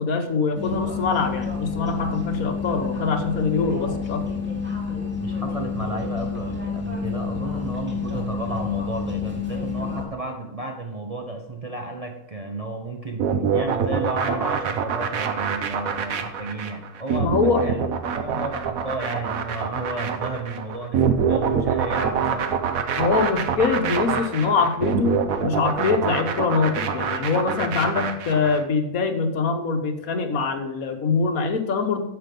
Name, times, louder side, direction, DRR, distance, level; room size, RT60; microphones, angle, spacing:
voice 1, 0.0-4.2 5.9-6.0 17.2-17.6 23.0-25.1 25.4-32.0, left 4 dB, 75° left, 7 dB, 1.5 m, -23 dB
sound 1, 0.5-10.0, left 5 dB, 5° right, 1.8 m, -29 dB
voice 2, 5.2-17.9 18.2-22.6, right 2 dB, 30° right, 3 dB, 0.7 m, -32 dB
sound 2, 13.2-28.6, right 7 dB, 75° right, 1.3 m, -25 dB
9.6 x 6.9 x 5.2 m, 0.95 s
omnidirectional pair, 1.5 m